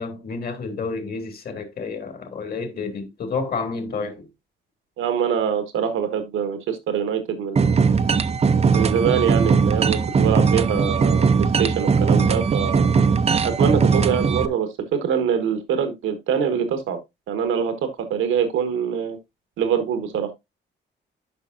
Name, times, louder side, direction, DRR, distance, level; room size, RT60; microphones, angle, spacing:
voice 1, 0.0-4.3, left 4 dB, 50° left, 2.3 m, -30 dB
voice 2, 5.0-7.7 8.7-12.9 13.4-17.0 17.3-19.2 19.6-20.3, right 7 dB, 85° right, 1.5 m, -24 dB
sound 1, 7.6-14.5, right 5 dB, 30° right, 0.6 m, -19 dB
12.0 x 5.3 x 2.6 m
cardioid pair, 90°, 20 cm